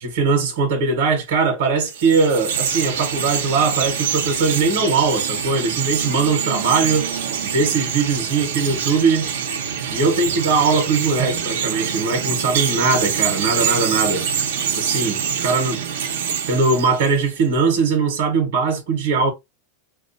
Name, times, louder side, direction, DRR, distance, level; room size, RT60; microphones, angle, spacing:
voice 1, 0.0-7.1 7.5-9.3 9.9-14.3 14.7-15.8 16.5-19.3, right 4 dB, 60° right, 1.0 m, -20 dB
Chirp tweet, 1.8-17.4, right 7 dB, 90° right, 0.7 m, -25 dB
2.3 x 2.2 x 2.5 m
supercardioid pair, 160°, 0 cm